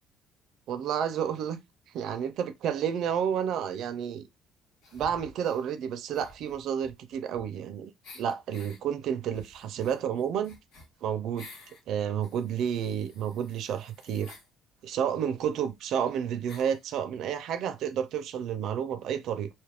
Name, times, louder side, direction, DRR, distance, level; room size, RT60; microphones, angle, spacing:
voice 1, 0.7-1.6 1.9-4.3 4.9-10.6 11.0-11.5 11.9-14.3 14.8-19.5, right 8 dB, 60° right, 0.4 m, -30 dB
sound 1, 4.8-5.7 6.1-7.7 8.0-8.8 9.3-11.8 12.2-14.5 15.4-15.5 15.7-15.8 16.5-16.8, left 2 dB, 85° left, 1.3 m, -52 dB
2.6 x 2.4 x 3.4 m
cardioid pair, 150°, 0 cm